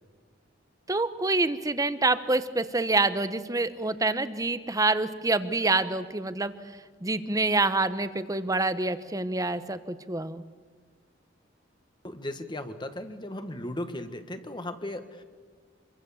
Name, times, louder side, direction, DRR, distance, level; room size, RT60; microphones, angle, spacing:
voice 1, 0.9-6.5 7.0-10.4, right 2 dB, 20° right, 12 dB, 1.0 m, -26 dB
voice 2, 12.0-15.2, left 1 dB, 25° left, 8 dB, 1.6 m, -36 dB
26.0 x 23.5 x 7.2 m, 1.5 s
head